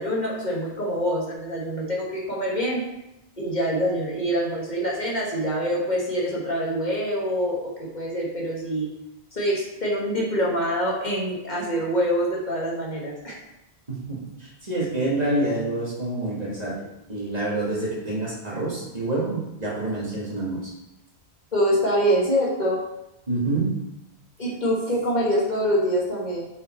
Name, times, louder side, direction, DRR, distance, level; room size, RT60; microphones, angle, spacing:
voice 1, 0.0-2.8 3.4-8.9 9.3-13.4 21.5-22.8 24.4-26.5, equal, 45° left, -4 dB, 1.8 m, -25 dB
voice 2, 13.9-16.7 17.1-20.6 23.3-23.7, right 2 dB, 40° right, -6 dB, 2.1 m, -27 dB
6.2 x 5.5 x 4.5 m, 0.90 s
omnidirectional pair, 1.1 m